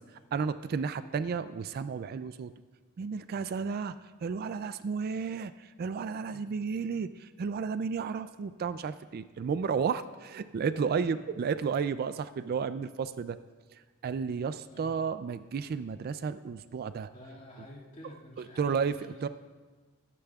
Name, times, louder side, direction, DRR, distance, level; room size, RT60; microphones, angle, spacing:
voice 1, 0.3-2.5 3.0-3.9 4.2-5.5 5.8-7.1 7.4-13.4 14.0-17.1 18.6-19.3, right 6 dB, 45° right, 13 dB, 0.3 m, -32 dB
voice 2, 10.8-11.4 14.7-14.9 17.1-19.2, left 1 dB, 35° left, -4 dB, 2.1 m, -50 dB
20.5 x 10.0 x 2.4 m, 1.4 s
head